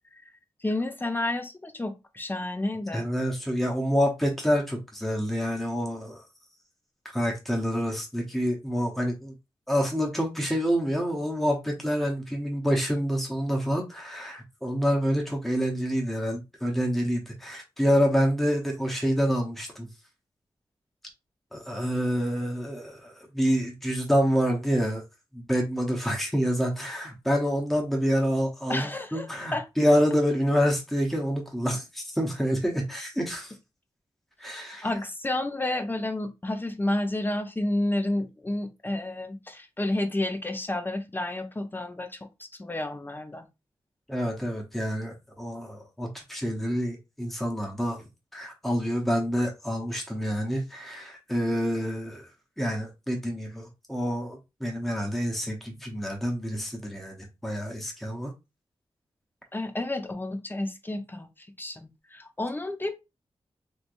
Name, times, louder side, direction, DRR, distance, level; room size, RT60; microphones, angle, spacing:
voice 1, 0.6-3.1 28.7-29.3 29.5-29.6 34.8-43.5 59.5-62.9, left 1 dB, 20° left, 0.6 m, -30 dB
voice 2, 2.9-6.2 7.1-9.3 9.7-19.9 21.5-25.0 25.3-33.5 34.4-34.9 44.1-48.1 48.3-52.3 52.6-58.3, equal, ahead, 0.9 m, -27 dB
3.2 x 3.2 x 2.5 m
wide cardioid pair, 80°, 10 cm